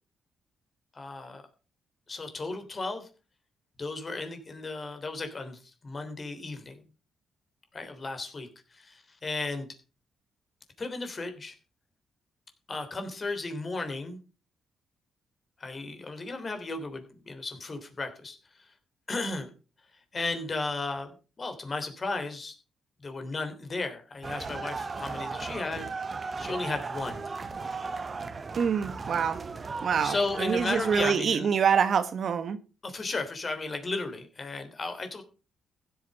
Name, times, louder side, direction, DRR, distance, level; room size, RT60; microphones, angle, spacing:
voice 1, 0.9-1.4 2.1-3.1 3.8-6.8 7.7-9.6 10.8-11.5 12.7-14.2 15.6-18.4 19.1-19.5 20.1-22.5 23.0-25.9 26.4-27.2 30.0-31.5 32.8-35.2, left 3 dB, 30° left, 3.3 m, -34 dB
sound 1, 24.2-31.1, right 4 dB, 30° right, 1.1 m, -36 dB
voice 2, 28.6-29.4 29.8-32.6, right 7 dB, 50° right, 1.1 m, -26 dB
15.5 x 8.7 x 5.4 m
cardioid pair, 120°, 0 cm